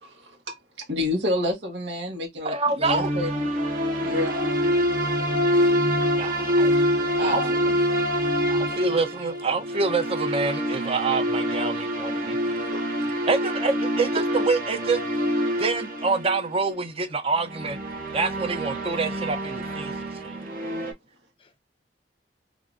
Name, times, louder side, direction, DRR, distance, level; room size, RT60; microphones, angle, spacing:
voice 1, 0.0-0.6 0.9-3.5 4.0-4.7 7.2-7.7 8.6-8.7 12.7-12.8 14.1-14.2, left 1 dB, 80° right, 1.1 m, -29 dB
voice 2, 2.4-3.1 6.2-6.7 7.2-7.4 8.5-12.4 13.3-15.0 15.6-17.8 18.1-19.9 20.2-20.4, right 4 dB, 35° right, 0.6 m, -26 dB
sound 1, 2.8-16.5 17.4-20.9, equal, 55° right, 0.9 m, -26 dB
voice 3, 5.3-6.0 6.3-6.6 21.4-21.5, left 1 dB, 30° left, 0.6 m, -55 dB
3.5 x 2.4 x 2.4 m
head